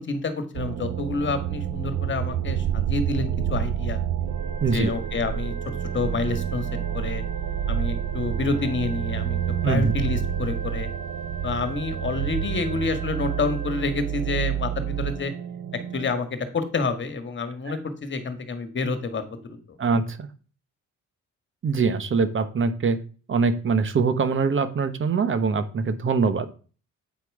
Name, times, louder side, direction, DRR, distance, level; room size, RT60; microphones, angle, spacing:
voice 1, 0.0-4.0 4.7-6.7 6.9-7.2 7.7-9.4 9.7-10.9 11.4-15.3 15.9-19.6, left 3 dB, 40° left, 9 dB, 1.6 m, -28 dB
sound 1, 0.5-16.1, right 9 dB, 60° right, 0.5 m, -29 dB
sound 2, 4.2-13.9, right 3 dB, 25° right, 2.3 m, -40 dB
voice 2, 4.6-4.9 9.6-9.9 17.7-17.8 19.8-20.3 21.6-23.0 23.3-26.5, right 4 dB, 40° right, 12 dB, 1.1 m, -23 dB
8.3 x 4.8 x 4.8 m, 0.38 s
cardioid pair, 90°, 30 cm